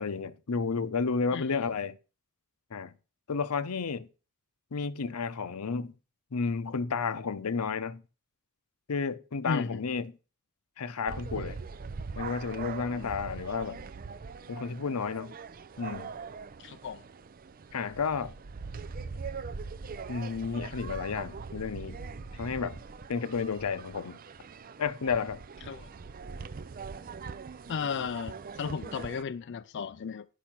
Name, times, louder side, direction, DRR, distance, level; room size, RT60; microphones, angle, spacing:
voice 1, 0.0-2.0 2.7-2.9 3.3-4.1 4.7-5.9 6.3-8.0 8.9-10.1 10.8-11.6 12.2-13.9 14.5-15.4 15.8-16.1 17.7-18.3 20.1-22.0 22.3-22.8 23.1-24.2 24.8-25.4, left 5 dB, 90° left, 0.7 m, -32 dB
voice 2, 1.3-1.6 9.4-9.8 12.9-13.1 16.6-17.0 25.7-25.9 27.7-30.3, left 6 dB, 55° left, 0.4 m, -35 dB
sound 1, 11.1-29.2, right 5 dB, 40° right, 0.5 m, -42 dB
10.5 x 5.5 x 5.9 m
head